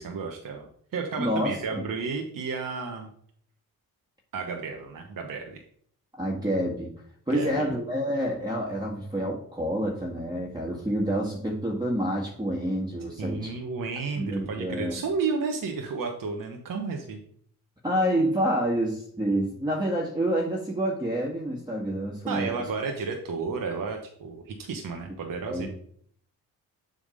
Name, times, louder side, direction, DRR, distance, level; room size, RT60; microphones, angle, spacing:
voice 1, 0.0-3.1 4.3-5.6 7.3-7.7 13.2-17.2 22.3-25.7, right 4 dB, 45° right, 2 dB, 1.1 m, -32 dB
voice 2, 1.2-1.8 6.2-6.9 7.3-13.6 14.2-15.0 17.8-22.5 25.4-25.7, equal, 10° right, -3 dB, 1.8 m, -28 dB
7.4 x 3.5 x 5.2 m, 0.63 s
hypercardioid pair, 40°, 45 cm